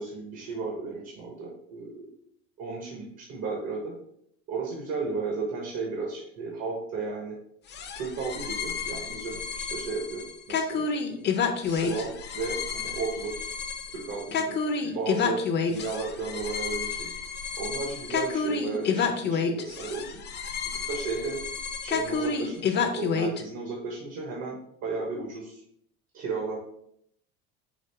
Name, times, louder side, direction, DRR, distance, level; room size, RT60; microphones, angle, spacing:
voice 1, 0.0-2.1 2.6-3.9 4.5-7.4 7.9-10.2 10.5-11.3 11.6-13.5 13.9-14.6 14.8-15.4 15.7-17.1 17.6-20.2 20.9-21.4 21.8-24.6 24.8-25.6 26.1-26.6, right 4 dB, 55° right, -1 dB, 1.1 m, -34 dB
sound 1, 7.7-23.4, left 5 dB, 35° left, 0.5 m, -30 dB
4.9 x 2.5 x 3.4 m, 0.72 s
supercardioid pair, 100°, 32 cm